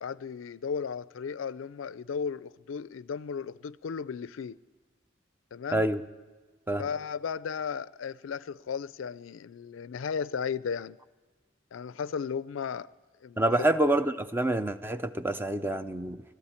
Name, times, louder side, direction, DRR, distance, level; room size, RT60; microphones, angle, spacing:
voice 1, 0.0-4.6 5.5-5.9 6.8-11.0 11.7-12.9 13.2-13.7, left 6 dB, 90° left, 0.4 m, -35 dB
voice 2, 13.4-16.2, right 1 dB, 10° right, 0.5 m, -27 dB
20.5 x 14.5 x 4.4 m
head